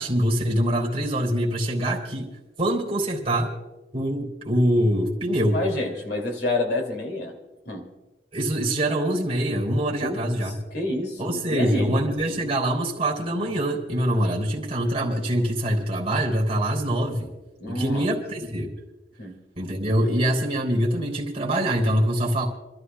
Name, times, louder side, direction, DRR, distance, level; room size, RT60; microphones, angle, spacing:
voice 1, 0.0-2.3 2.6-3.5 3.9-5.6 8.3-10.6 11.2-17.3 17.7-18.7 19.6-22.5, right 1 dB, 35° right, -1 dB, 3.2 m, -24 dB
voice 2, 5.5-7.3 7.7-7.9 10.0-10.2 10.7-11.9 17.6-18.0 19.2-19.4, left 2 dB, 60° left, 2 dB, 2.5 m, -28 dB
29.5 x 13.0 x 2.3 m, 1.1 s
head